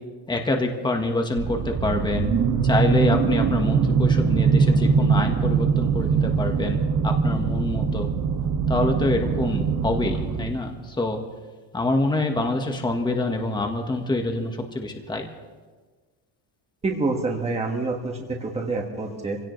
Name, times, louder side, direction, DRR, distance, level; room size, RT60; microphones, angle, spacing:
voice 1, 0.3-2.3 2.6-8.1 8.7-11.2 11.7-15.3, left 2 dB, 10° left, 3 dB, 1.4 m, -26 dB
sound 1, 1.4-10.5, right 5 dB, 55° right, 1.7 m, -22 dB
voice 2, 16.8-19.4, right 3 dB, 15° right, 0 dB, 1.6 m, -27 dB
25.0 x 17.0 x 3.2 m, 1.4 s
cardioid pair, 160°, 40 cm